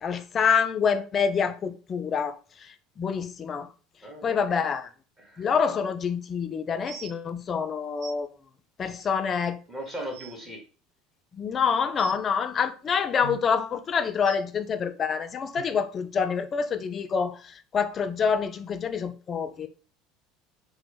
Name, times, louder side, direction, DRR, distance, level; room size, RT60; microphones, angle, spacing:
voice 1, 0.0-2.4 3.0-3.7 4.2-4.9 5.4-8.3 8.8-9.6 11.4-17.4 17.7-19.7, left 6 dB, 35° left, 0.4 m, -26 dB
voice 2, 4.0-4.6 5.2-5.5 9.7-10.6, right 1 dB, 20° right, 1.5 m, -38 dB
sound 1, 6.8-7.1 8.0-8.1 9.0-9.1 9.7-9.8 10.0-10.3 12.0-12.2 13.2-13.4 14.2-14.4 15.5-15.6 16.4-16.5 17.2-17.3, right 10 dB, 60° right, 0.4 m, -42 dB
3.0 x 2.0 x 3.4 m
hypercardioid pair, 70°, 0 cm